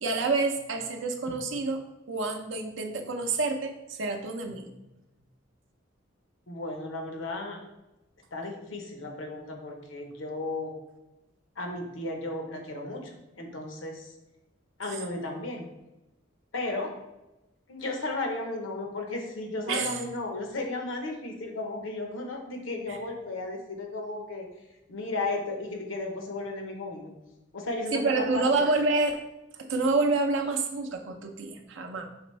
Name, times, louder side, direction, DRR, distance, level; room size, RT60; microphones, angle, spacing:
voice 1, 0.0-4.7 19.7-20.0 22.9-23.0 27.9-29.2 29.6-32.1, right 3 dB, 70° right, 5 dB, 0.6 m, -28 dB
voice 2, 6.5-7.6 8.3-10.7 11.6-14.1 14.8-15.7 16.5-16.9 17.7-24.5 24.9-27.1 27.5-28.4, left 2 dB, 80° left, 3 dB, 0.9 m, -34 dB
5.0 x 3.4 x 3.1 m, 0.99 s
head